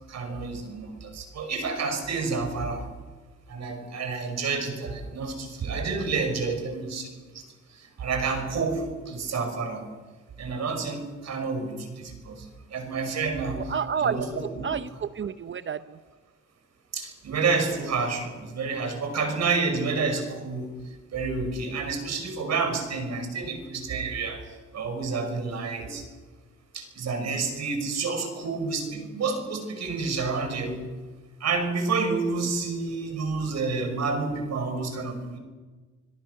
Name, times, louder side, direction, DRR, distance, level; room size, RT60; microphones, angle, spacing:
voice 1, 0.1-2.8 3.5-7.4 7.7-9.8 10.4-13.7 14.0-14.7 16.9-20.7 21.1-26.0 26.7-30.8 31.4-35.4, right 4 dB, 60° right, 6 dB, 5.8 m, -29 dB
voice 2, 13.6-16.0, right 7 dB, 40° right, 13 dB, 0.8 m, -30 dB
26.0 x 22.5 x 6.7 m, 1.3 s
cardioid pair, 90°, 30 cm